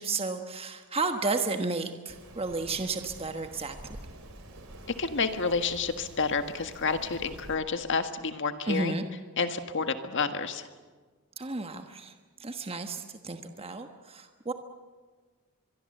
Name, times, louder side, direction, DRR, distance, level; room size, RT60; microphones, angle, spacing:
voice 1, 0.0-3.8 8.6-9.0 11.4-12.1 12.4-14.5, right 3 dB, 25° right, 6 dB, 1.3 m, -32 dB
Rain, 2.1-7.6, right 1 dB, 65° right, 3.8 m, -48 dB
voice 2, 5.0-9.0 9.4-10.7, left 4 dB, 55° left, 8 dB, 1.7 m, -29 dB
24.5 x 22.0 x 8.0 m, 1.4 s
head